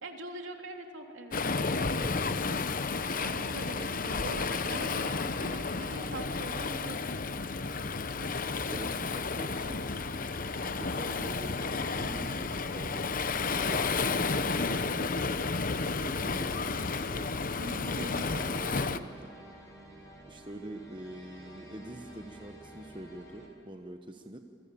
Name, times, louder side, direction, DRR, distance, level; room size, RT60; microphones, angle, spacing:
voice 1, 0.0-1.7 3.2-7.3 17.6-18.8, right 1 dB, 65° right, 2 dB, 3.3 m, -43 dB
Waves surf, 1.3-19.0, left 4 dB, 40° left, 0.9 m, -32 dB
voice 2, 1.7-2.7 3.7-4.0 8.6-10.1 10.5-15.2 16.0-17.3 17.7-19.3 20.3-24.4, right 1 dB, 25° right, 4 dB, 1.1 m, -45 dB
sound 1, 3.5-6.5 9.8-9.9 12.0-12.1 18.3-18.4, right 3 dB, 40° right, 6.3 m, -55 dB
sound 2, 8.0-23.5, equal, 15° left, 6.3 m, -52 dB
28.0 x 25.0 x 8.6 m, 2.7 s
head